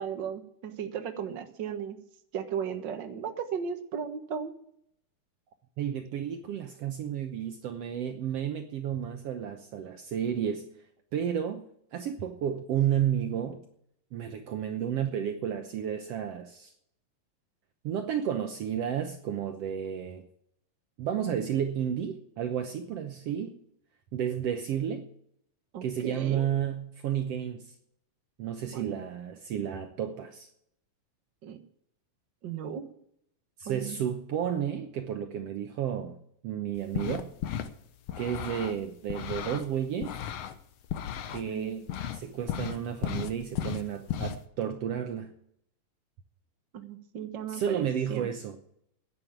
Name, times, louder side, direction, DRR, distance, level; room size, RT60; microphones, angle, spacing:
voice 1, 0.0-2.0 2.3-4.5 25.7-26.5 28.7-29.0 31.4-31.6 32.4-32.9 33.6-34.0 41.5-41.8 46.7-47.8 48.1-48.3, right 7 dB, 55° right, 1.2 m, -36 dB
voice 2, 5.8-10.7 11.1-11.6 11.9-13.6 14.1-16.7 17.8-20.2 21.0-23.6 24.1-25.1 25.8-27.7 28.4-30.5 33.6-36.2 36.4-37.3 38.1-40.2 41.3-45.3 47.5-48.6, right 9 dB, 85° right, 1.3 m, -32 dB
sound 1, 36.8-37.7 38.1-39.7 40.0-41.4 41.9-42.2 42.5-44.4, left 9 dB, 75° left, 1.5 m, -34 dB
11.0 x 9.6 x 8.7 m
omnidirectional pair, 4.2 m